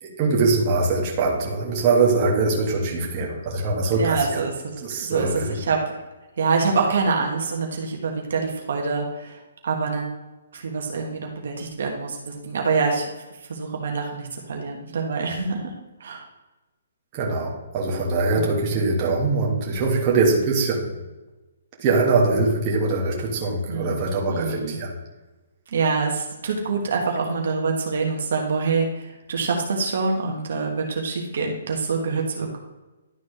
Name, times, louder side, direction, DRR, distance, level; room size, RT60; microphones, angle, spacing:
voice 1, 0.0-4.4 4.8-5.6 17.1-20.9 21.8-24.9, right 3 dB, 25° right, -2 dB, 1.7 m, -22 dB
voice 2, 3.9-4.7 5.0-5.8 6.4-10.1 10.5-13.1 13.5-15.7 16.0-16.2 18.3-18.6 23.7-24.0 24.3-24.8 25.7-32.6, right 4 dB, 65° right, 1 dB, 1.5 m, -25 dB
11.5 x 4.2 x 3.3 m, 1.1 s
hypercardioid pair, 160°, 0 cm